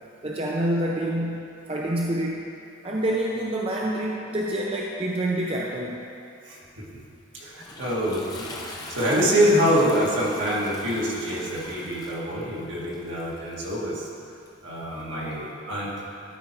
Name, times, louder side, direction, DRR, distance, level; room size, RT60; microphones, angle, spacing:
voice 1, 0.2-2.5 2.8-6.1, right 1 dB, 30° right, -3 dB, 0.5 m, -27 dB
voice 2, 6.4-6.9 7.3-14.1 14.6-15.9, equal, 70° right, -5 dB, 1.7 m, -25 dB
Toilet flush, 7.0-15.4, left 2 dB, 20° left, 0.6 m, -43 dB
12.5 x 4.5 x 4.4 m, 2.6 s
head